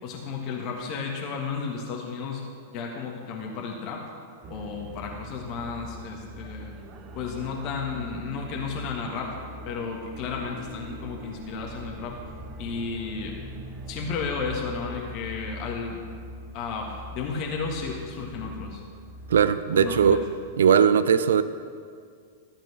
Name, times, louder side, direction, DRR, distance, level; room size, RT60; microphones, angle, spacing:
voice 1, 0.0-2.4 2.7-4.0 4.5-6.7 7.1-9.3 9.6-12.2 12.6-13.3 13.9-16.0 16.5-18.8 19.7-20.2, left 5 dB, 40° left, 0 dB, 1.6 m, -33 dB
sound 1, 4.4-20.5, right 1 dB, 30° right, 1.1 m, -42 dB
voice 2, 19.3-20.2 20.6-21.4, right 7 dB, 65° right, 13 dB, 0.4 m, -19 dB
13.5 x 7.4 x 6.2 m, 2.1 s
figure-of-eight pair, 95°, 0 cm